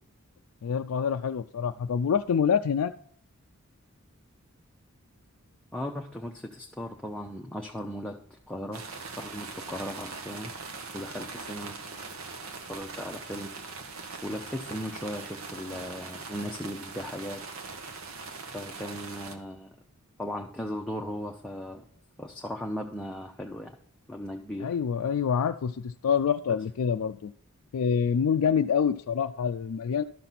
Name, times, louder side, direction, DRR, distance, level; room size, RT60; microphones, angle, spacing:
voice 1, 0.6-2.9 24.6-27.3 27.7-30.0, left 7 dB, 85° left, 7 dB, 0.4 m, -26 dB
voice 2, 5.7-8.8 9.2-10.5 10.9-11.8 12.7-13.5 14.2-17.4 18.5-19.8 20.2-21.8 22.2-23.7 24.1-24.7 26.5-26.6, equal, 5° left, 0 dB, 0.6 m, -37 dB
sound 1, 8.7-19.3, right 4 dB, 75° right, 1.1 m, -41 dB
12.0 x 5.9 x 4.0 m, 0.65 s
head